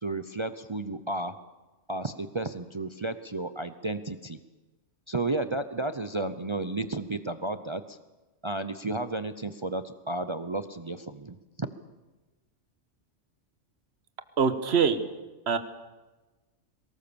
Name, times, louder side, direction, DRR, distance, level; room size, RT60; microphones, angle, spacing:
voice 1, 0.0-1.3 1.9-4.4 5.1-8.0 8.4-11.7, right 2 dB, 30° right, 11 dB, 0.6 m, -32 dB
voice 2, 14.4-15.0 15.5-15.6, right 6 dB, 55° right, 11 dB, 1.5 m, -23 dB
23.0 x 19.5 x 7.0 m, 1.2 s
omnidirectional pair, 1.3 m